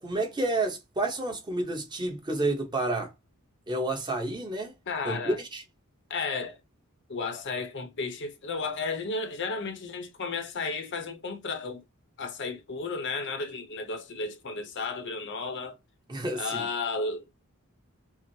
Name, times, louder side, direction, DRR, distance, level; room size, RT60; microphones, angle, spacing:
voice 1, 0.0-3.1 3.7-4.7 5.0-5.6 16.1-16.7, right 2 dB, 20° right, 0.8 m, -30 dB
voice 2, 4.9-5.4 6.1-6.6 7.1-11.8 12.2-15.8 16.3-17.3, left 4 dB, 55° left, 0.7 m, -33 dB
5.5 x 2.0 x 3.1 m
head